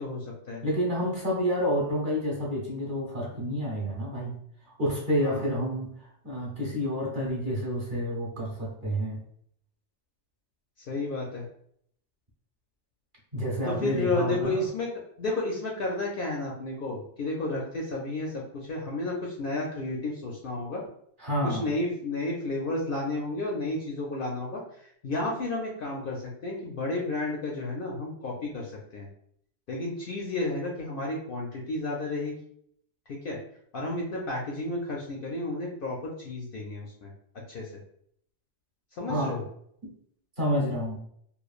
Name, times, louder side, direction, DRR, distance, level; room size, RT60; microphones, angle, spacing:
voice 1, 0.0-0.6 5.2-5.5 10.9-11.4 13.7-14.9 15.2-20.8 21.4-29.1 29.7-32.4 33.1-33.4 33.7-37.1 37.5-37.7 38.9-39.4, left 2 dB, 60° left, -2 dB, 0.6 m, -32 dB
voice 2, 0.6-4.4 4.6-9.2 13.3-14.7 21.2-21.7 39.1-39.4 39.8-39.9 40.4-41.0, equal, 45° right, -4 dB, 1.0 m, -29 dB
3.0 x 2.4 x 2.4 m, 0.67 s
omnidirectional pair, 1.2 m